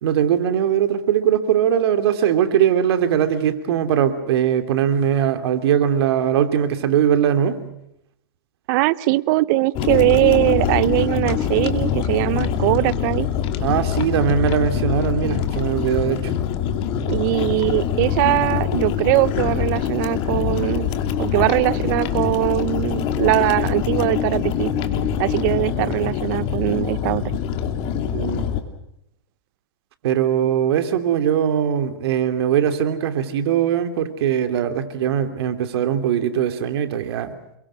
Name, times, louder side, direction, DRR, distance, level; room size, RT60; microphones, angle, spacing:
voice 1, 0.0-7.6 13.6-16.3 28.1-28.4 30.0-37.6, right 9 dB, 65° right, 8 dB, 2.7 m, -20 dB
voice 2, 8.7-13.3 17.1-20.9 21.2-24.7 25.2-27.2, right 20 dB, 45° right, 19 dB, 0.8 m, -21 dB
sound 1, 9.7-28.6, left 9 dB, 40° left, 2.7 m, -24 dB
28.5 x 22.5 x 6.3 m, 0.79 s
hypercardioid pair, 135°, 14 cm